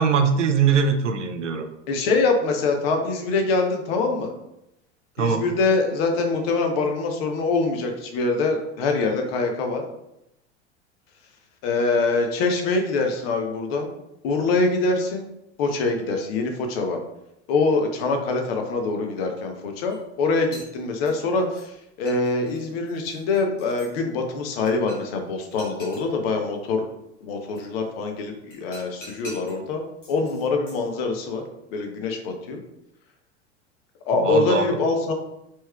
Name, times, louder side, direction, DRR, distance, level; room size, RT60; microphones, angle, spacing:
voice 1, 0.0-1.7 5.2-5.4 34.2-34.8, right 6 dB, 80° right, 8 dB, 0.5 m, -21 dB
voice 2, 1.9-4.3 5.2-9.8 11.6-13.9 14.2-15.3 15.6-17.0 17.5-21.7 22.0-26.9 27.2-29.8 30.1-31.4 31.7-32.6 34.0-35.1, left 3 dB, 55° left, 4 dB, 0.8 m, -24 dB
sound 1, 19.9-20.0 20.4-21.7 22.1-23.9 24.7-25.1 25.4-26.0 27.6-27.7 28.5-29.6 30.0-30.9, equal, 85° left, 1.4 m, -45 dB
4.4 x 3.1 x 2.3 m, 0.85 s
figure-of-eight pair, 80°, 36 cm